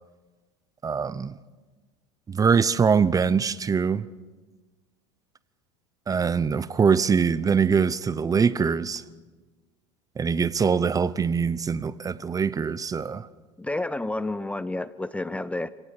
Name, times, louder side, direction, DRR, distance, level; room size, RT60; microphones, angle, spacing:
voice 1, 0.8-1.3 2.3-4.0 6.1-9.0 10.2-13.3, right 6 dB, 20° right, 0.8 m, -23 dB
voice 2, 13.6-15.7, left 2 dB, 10° left, 0.7 m, -30 dB
27.5 x 18.0 x 6.7 m
hypercardioid pair, 95°, 16 cm